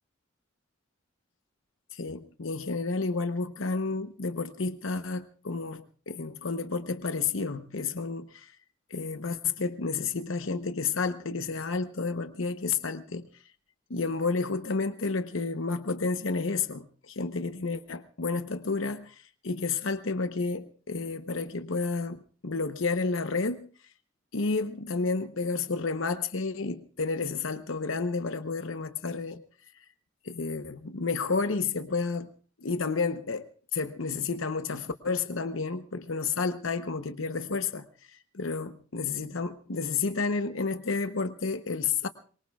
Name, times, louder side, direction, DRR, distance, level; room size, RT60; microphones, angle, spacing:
voice 1, 1.9-8.5 8.9-13.3 13.9-23.7 24.3-29.4 30.2-32.3 32.6-33.5 33.7-42.1, left 4 dB, 90° left, 9 dB, 0.9 m, -31 dB
24.0 x 22.5 x 2.4 m, 0.42 s
head